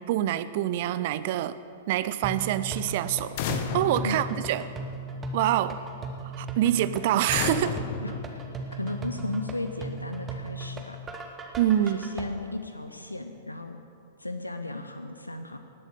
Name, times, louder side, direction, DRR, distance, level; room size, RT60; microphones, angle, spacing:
voice 1, 0.1-1.6 1.9-4.7 5.3-5.8 6.3-7.8 11.6-12.0, right 12 dB, 50° right, 14 dB, 0.6 m, -26 dB
sound 1, 2.2-12.2, right 2 dB, 20° right, 1.5 m, -37 dB
sound 2, 3.4-5.2 7.3-9.1, left 7 dB, 45° left, 1.1 m, -33 dB
voice 2, 8.0-11.0 11.8-13.8 14.2-15.6, left 2 dB, 85° left, 8 dB, 0.7 m, -35 dB
19.0 x 7.5 x 6.6 m, 2.5 s
figure-of-eight pair, 105°, 0 cm